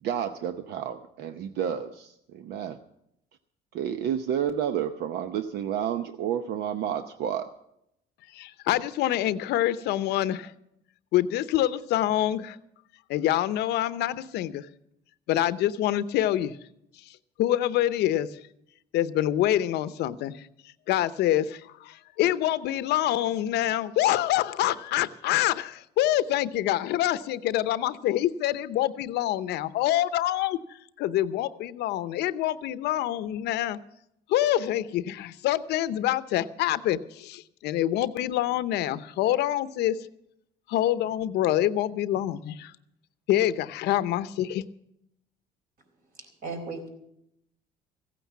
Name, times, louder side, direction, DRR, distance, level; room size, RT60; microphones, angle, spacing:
voice 1, 0.0-2.8 3.7-7.5, right 9 dB, 75° right, 9 dB, 0.8 m, -30 dB
voice 2, 8.3-10.5 11.1-12.6 13.1-14.7 15.3-16.6 17.4-18.3 18.9-20.5 20.9-30.6 31.0-33.8 34.3-40.0 40.7-42.7 43.3-44.6, left 13 dB, 80° left, 15 dB, 0.7 m, -26 dB
voice 3, 46.2-46.9, right 3 dB, 55° right, 4 dB, 4.1 m, -36 dB
15.5 x 9.2 x 7.4 m, 0.77 s
cardioid pair, 110°, 17 cm